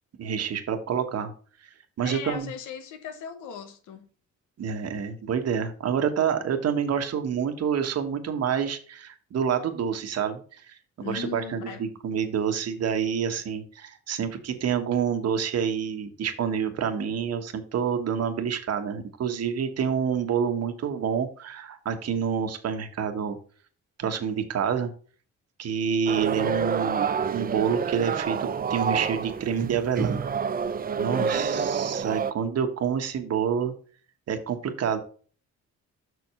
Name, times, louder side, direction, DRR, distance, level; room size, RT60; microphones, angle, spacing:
voice 1, 0.2-1.3 1.6-2.5 4.6-23.4 24.0-24.9 25.6-30.2 31.0-33.7 34.3-35.0, right 7 dB, 55° right, 1.2 m, -28 dB
voice 2, 2.0-4.1 11.0-11.9 31.2-31.7, left 7 dB, 85° left, 1.2 m, -38 dB
sound 1, 26.1-32.3, right 6 dB, 30° right, 0.5 m, -28 dB
6.2 x 4.7 x 5.5 m
cardioid pair, 90°, 30 cm